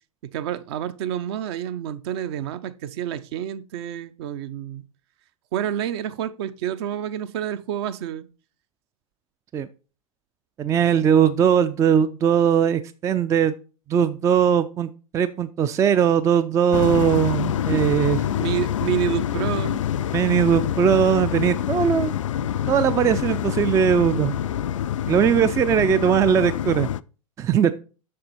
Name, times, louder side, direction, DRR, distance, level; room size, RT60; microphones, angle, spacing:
voice 1, 0.3-4.8 5.5-8.3 17.7-17.9 18.4-19.8, right 10 dB, 50° right, 0.7 m, -28 dB
voice 2, 10.6-13.5 13.9-18.2 20.1-22.2 22.7-24.3 25.1-26.9 27.4-27.7, right 8 dB, 15° right, 0.4 m, -20 dB
sound 1, 16.7-27.0, left 10 dB, 65° left, 0.4 m, -26 dB
7.6 x 6.6 x 4.2 m
figure-of-eight pair, 95°, 18 cm